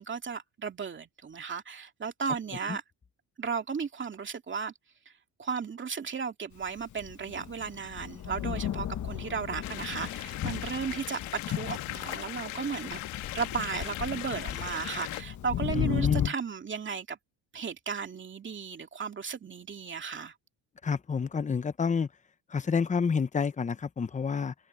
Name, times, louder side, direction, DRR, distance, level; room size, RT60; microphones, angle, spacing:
voice 1, 0.0-2.8 3.4-4.7 5.4-17.2 17.5-20.3, right 6 dB, 25° right, 2.4 m, -35 dB
Thunder, 6.8-16.3, left 11 dB, 40° left, 1.0 m, -35 dB
sound 1, 9.6-15.2, left 16 dB, 80° left, 1.8 m, -39 dB
voice 2, 15.7-16.3 20.8-22.1 22.5-24.5, left 5 dB, 15° left, 0.7 m, -28 dB
open air
cardioid pair, 145°, 47 cm